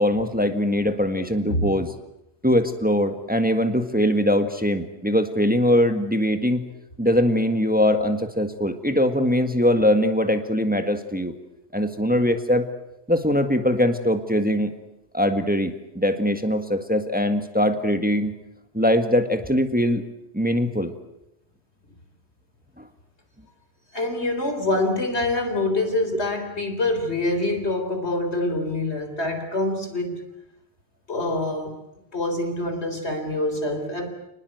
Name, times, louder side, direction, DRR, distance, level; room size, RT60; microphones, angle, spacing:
voice 1, 0.0-1.9 2.4-6.6 7.0-11.3 11.7-12.7 13.1-14.7 15.1-18.3 18.7-20.0 20.3-20.9 22.8-22.9, equal, 10° right, 7 dB, 1.7 m, -21 dB
voice 2, 23.9-30.2 31.1-31.8 32.1-34.1, left 2 dB, 85° left, 6 dB, 4.2 m, -25 dB
29.0 x 20.0 x 8.0 m, 0.88 s
omnidirectional pair, 1.1 m